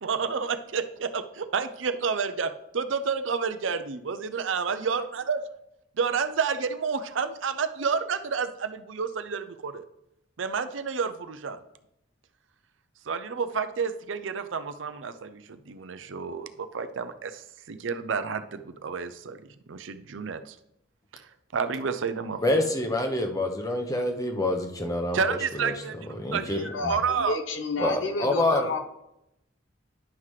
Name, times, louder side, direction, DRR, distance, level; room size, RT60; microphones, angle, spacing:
voice 1, 0.0-5.4 6.0-9.8 10.4-11.6 13.1-19.4 19.7-20.6 21.1-21.2 21.5-22.4 25.1-25.9 26.3-27.4, right 5 dB, 80° right, 10 dB, 0.6 m, -30 dB
voice 2, 22.4-25.7 26.1-26.9 27.8-28.7, left 1 dB, 20° left, 4 dB, 0.8 m, -27 dB
voice 3, 26.6-28.8, left 3 dB, 75° left, 8 dB, 0.8 m, -30 dB
10.5 x 5.7 x 3.2 m, 0.83 s
head